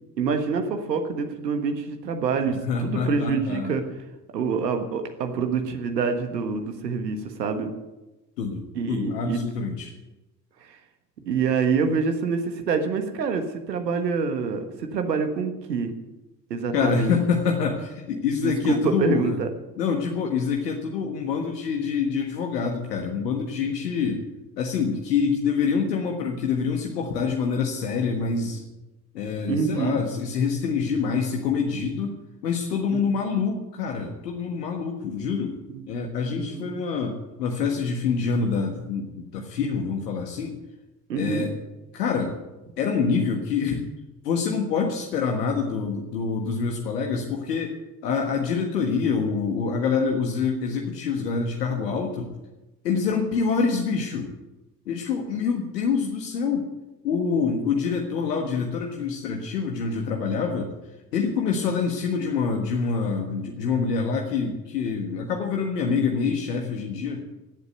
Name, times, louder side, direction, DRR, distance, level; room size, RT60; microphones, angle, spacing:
voice 1, 0.2-3.8 4.3-7.7 8.7-9.4 10.6-10.8 11.3-14.7 14.9-15.9 16.5-17.2 18.7-19.5 29.5-30.0 32.9-33.0 35.7-35.8 36.4-36.8 41.1-41.4, right 5 dB, 80° right, 6 dB, 1.5 m, -26 dB
voice 2, 2.5-3.8 8.4-9.9 16.7-19.4 19.8-24.2 24.6-28.6 29.1-32.2 32.4-35.5 35.9-40.5 41.1-41.5 41.9-42.4 42.8-43.8 44.2-47.7 48.0-52.3 52.8-54.3 54.8-56.7 57.0-60.7 61.1-67.2, left 5 dB, 75° left, 2 dB, 1.6 m, -26 dB
17.0 x 8.2 x 8.1 m, 1.0 s
figure-of-eight pair, 60°, 49 cm